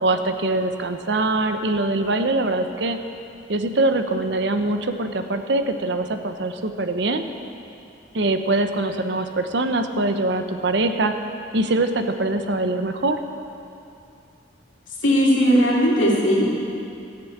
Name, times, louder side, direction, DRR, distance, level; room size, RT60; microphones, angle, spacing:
voice 1, 0.0-3.0 3.5-7.2 8.1-11.2 11.5-13.2, right 2 dB, 65° right, 7 dB, 0.8 m, -23 dB
voice 2, 15.0-16.5, equal, 90° left, -4 dB, 2.9 m, -17 dB
14.5 x 6.9 x 8.5 m, 2.6 s
head